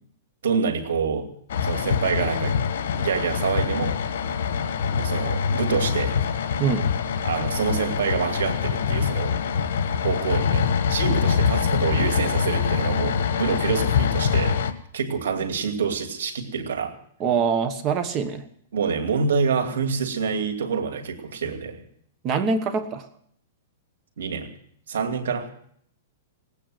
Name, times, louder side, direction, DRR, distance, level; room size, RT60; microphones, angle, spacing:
voice 1, 0.4-1.3 1.6-2.6 3.0-4.0 4.9-6.2 7.2-9.4 10.0-14.6 14.9-17.0 18.7-21.8 24.2-24.5 24.9-25.5, right 5 dB, 90° right, 6 dB, 2.7 m, -26 dB
sound 1, 1.5-14.7, left 7 dB, 70° left, 1.4 m, -24 dB
voice 2, 17.2-18.4 22.2-23.0, right 5 dB, 25° right, 9 dB, 1.2 m, -24 dB
18.5 x 9.1 x 7.9 m, 0.65 s
hypercardioid pair, 155°, 0 cm